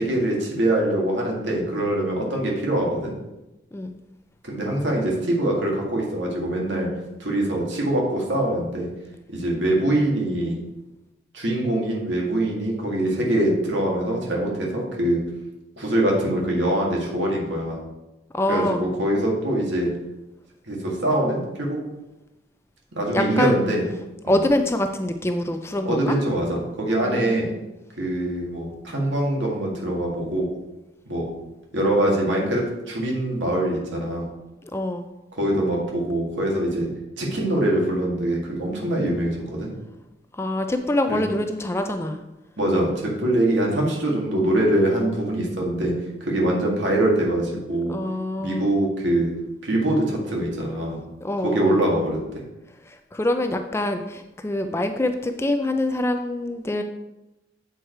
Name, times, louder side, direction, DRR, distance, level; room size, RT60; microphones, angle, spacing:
voice 1, 0.0-3.1 4.4-6.9 7.2-8.9 9.3-10.6 11.3-15.2 15.8-17.8 18.5-19.9 20.7-21.8 22.9-23.8 24.3-24.4 25.9-27.5 28.0-30.5 31.1-31.3 31.7-34.3 35.4-36.9 37.2-39.7 41.1-41.3 42.6-45.9 46.2-48.0 48.4-49.3 49.6-51.0 51.4-52.2, right 1 dB, 75° right, -2 dB, 2.0 m, -23 dB
voice 2, 18.3-18.8 23.1-23.7 24.3-26.2 27.0-27.6 34.6-35.1 40.3-42.2 47.9-48.7 51.2-51.8 52.9-56.8, left 1 dB, 15° left, 6 dB, 0.3 m, -25 dB
8.0 x 4.7 x 4.6 m, 0.98 s
head